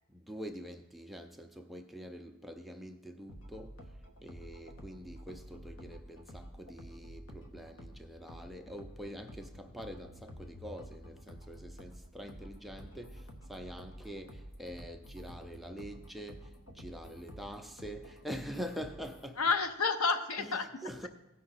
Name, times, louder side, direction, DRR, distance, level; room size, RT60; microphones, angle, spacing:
voice 1, 0.1-3.8 4.2-19.4 20.4-21.1, equal, ahead, 0.4 m, -45 dB
sound 1, 3.3-19.3, equal, 65° left, 1.2 m, -50 dB
voice 2, 19.4-21.1, left 4 dB, 80° left, 0.8 m, -31 dB
15.0 x 5.6 x 4.0 m
head